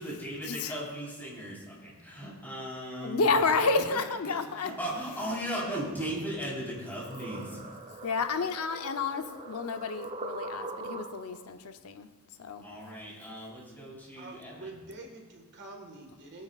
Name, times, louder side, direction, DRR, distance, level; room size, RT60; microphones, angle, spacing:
voice 1, 0.0-3.3 3.9-7.6 12.6-14.8, equal, 10° left, -6 dB, 3.9 m, -37 dB
voice 2, 3.0-4.7 8.0-12.1 12.4-12.6, left 4 dB, 85° left, 8 dB, 0.7 m, -30 dB
sound 1, 6.4-11.5, right 2 dB, 30° right, 0.8 m, -42 dB
voice 3, 14.2-16.4, right 2 dB, 50° right, 1 dB, 1.7 m, -46 dB
21.0 x 9.6 x 2.4 m, 1.3 s
head